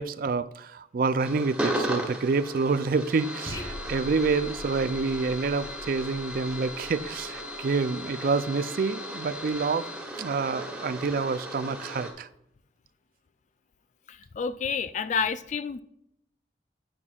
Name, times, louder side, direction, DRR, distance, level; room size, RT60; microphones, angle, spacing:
voice 1, 0.0-9.9 10.2-12.3, right 4 dB, 55° right, 0.4 m, -28 dB
sound 1, 1.2-12.1, equal, 5° right, 1.5 m, -36 dB
sound 2, 3.5-8.1, left 1 dB, 25° left, 0.9 m, -43 dB
voice 2, 14.1-15.8, left 6 dB, 45° left, 0.4 m, -29 dB
9.8 x 9.1 x 2.4 m
head